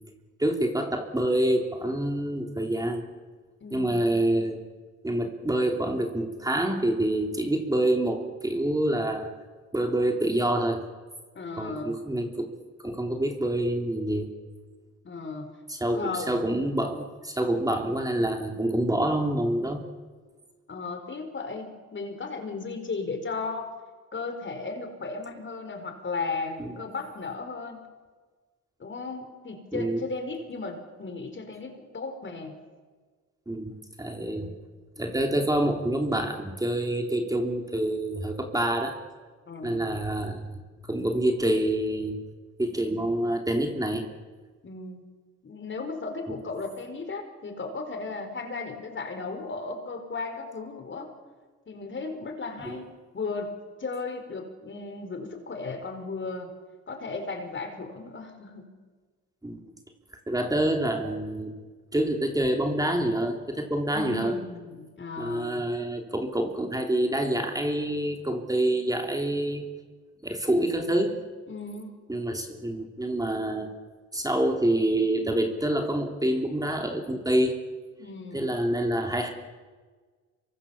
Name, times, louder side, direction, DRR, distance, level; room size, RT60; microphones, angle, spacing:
voice 1, 0.4-3.0 3.7-4.6 5.0-9.3 9.7-10.8 11.6-12.5 12.8-14.3 15.7-19.8 26.6-26.8 29.7-30.0 33.5-33.7 34.0-34.5 35.0-39.0 39.6-40.6 40.9-42.2 42.6-44.1 46.3-46.4 52.6-52.8 59.4-59.7 60.3-61.5 61.9-64.4 65.2-69.6 70.2-71.2 72.1-73.7 74.1-77.6 78.3-79.3, right 1 dB, 10° right, 3 dB, 3.2 m, -27 dB
voice 2, 3.6-4.1 11.3-12.0 15.0-15.5 15.9-16.5 20.7-23.7 24.1-27.9 28.8-32.5 34.2-34.6 39.5-40.0 42.9-43.0 44.6-45.0 45.4-51.1 51.7-56.5 56.9-58.7 63.9-65.6 71.5-72.0 78.0-78.5, left 3 dB, 40° left, 6 dB, 4.8 m, -35 dB
26.0 x 23.5 x 7.2 m, 1.4 s
cardioid pair, 90°, 30 cm